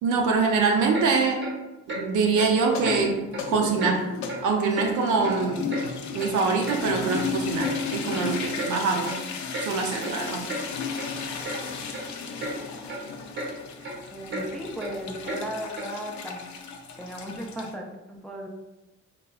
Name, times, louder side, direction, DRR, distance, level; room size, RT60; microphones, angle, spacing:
voice 1, 0.0-1.4 1.9-4.0 4.4-5.7 6.1-9.2 9.6-10.4, right 4 dB, 80° right, 1 dB, 0.6 m, -24 dB
Clock, 0.9-1.1 1.4-1.6 1.9-2.0 2.4-2.5 2.8-3.0 3.3-3.5 3.8-3.9 4.3-4.4 4.8-4.9 5.2-5.9 6.2-6.3 6.6-6.8 7.1-7.3 7.6-7.8 8.1-8.2 8.6-8.7 9.1-9.2 9.5-9.7 10.0-10.1 10.5-10.6 11.0-11.1 11.4-11.6 11.9-12.1 12.4-12.5 12.9-13.0 13.3-13.5 13.8-13.9 14.3-14.4 14.8-14.9 15.3-15.4 15.8-15.9, right 2 dB, 40° right, 0.7 m, -33 dB
sound 1, 2.6-17.7, left 5 dB, 70° left, 0.5 m, -34 dB
voice 2, 14.1-16.4 17.0-18.5, equal, ahead, 0 dB, 0.3 m, -36 dB
2.9 x 2.2 x 2.3 m, 1.1 s
cardioid pair, 90°, 30 cm